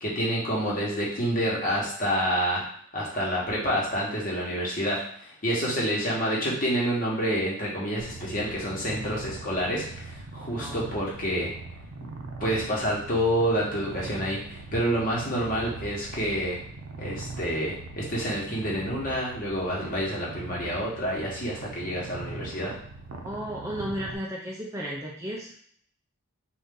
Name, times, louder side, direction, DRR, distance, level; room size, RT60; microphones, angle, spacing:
voice 1, 0.0-2.6 2.9-11.5 12.4-16.6 17.0-22.7, equal, 40° left, -4 dB, 1.2 m, -28 dB
Purr, 8.0-24.2, right 3 dB, 85° right, 0.6 m, -41 dB
voice 2, 23.2-25.5, equal, 15° right, -4 dB, 0.5 m, -34 dB
3.9 x 2.6 x 3.7 m, 0.62 s
head